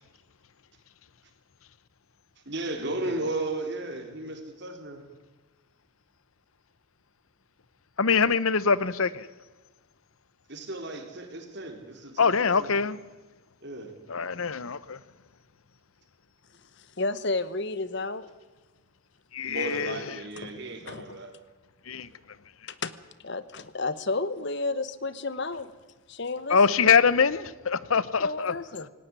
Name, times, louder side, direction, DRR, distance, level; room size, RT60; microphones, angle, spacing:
voice 1, 2.5-5.0 10.5-12.8 13.6-13.9 14.2-14.3 19.5-21.3, right 2 dB, 50° right, 3.8 m, -35 dB
voice 2, 8.0-9.3 12.2-13.0 14.1-15.0 19.3-20.0 21.9-22.1 26.5-28.5, left 5 dB, 75° left, 0.8 m, -23 dB
voice 3, 16.8-18.3 20.4-20.6 20.9-21.2 22.7-22.9 23.2-25.7 26.1-26.6 28.2-28.9, left 3 dB, 50° left, 1.1 m, -31 dB
18.5 x 18.0 x 9.6 m
head